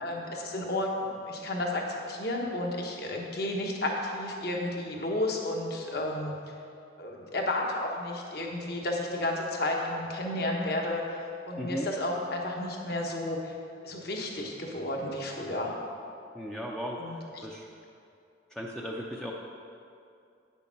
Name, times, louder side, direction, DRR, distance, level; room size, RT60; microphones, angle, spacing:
voice 1, 0.0-6.3 7.0-13.5 13.8-15.7 16.9-17.4, left 1 dB, 55° left, 0 dB, 1.3 m, -32 dB
voice 2, 11.6-11.9 16.3-17.7 18.5-19.3, equal, 5° left, -3 dB, 0.5 m, -36 dB
9.0 x 7.0 x 5.9 m, 2.5 s
head